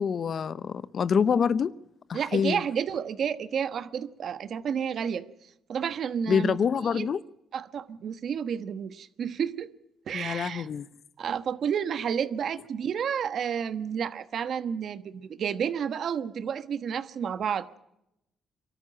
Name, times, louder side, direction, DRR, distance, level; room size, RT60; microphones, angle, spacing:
voice 1, 0.0-1.7 2.1-2.6 6.3-7.2 10.1-10.9, left 6 dB, 50° left, 0.7 m, -26 dB
voice 2, 2.1-5.2 5.7-6.6 6.9-7.1 7.5-9.7 10.1-10.7 11.2-17.7, right 7 dB, 60° right, 1.2 m, -31 dB
23.5 x 13.0 x 8.7 m
cardioid pair, 90°, 0 cm